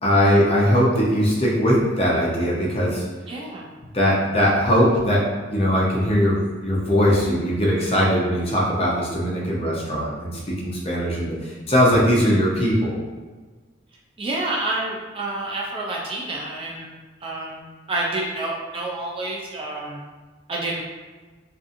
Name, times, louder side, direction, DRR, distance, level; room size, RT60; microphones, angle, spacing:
voice 1, 0.0-3.0 3.9-5.2 5.5-12.9, equal, 30° left, -4 dB, 0.6 m, -20 dB
voice 2, 3.3-3.7 14.2-16.9 17.2-20.0 20.5-20.8, right 2 dB, 30° right, -2 dB, 0.3 m, -28 dB
2.6 x 2.4 x 2.5 m, 1.3 s
head